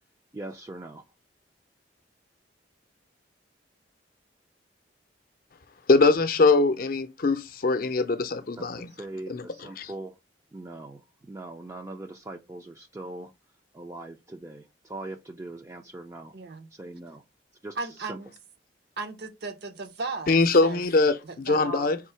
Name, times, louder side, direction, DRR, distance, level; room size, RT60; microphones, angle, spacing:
voice 1, 0.3-1.0 8.6-10.1 10.5-13.3 13.7-16.3 16.7-17.2 17.6-17.8 18.0-18.2, right 2 dB, 15° right, 0.3 m, -41 dB
voice 2, 5.9-8.9 9.3-9.4 9.8-9.9 20.3-22.0, left 3 dB, 50° left, 0.5 m, -22 dB
voice 3, 16.3-16.7 17.8-18.3 19.0-20.8 21.2-21.9, right 3 dB, 60° right, 0.6 m, -36 dB
3.7 x 2.7 x 4.3 m
head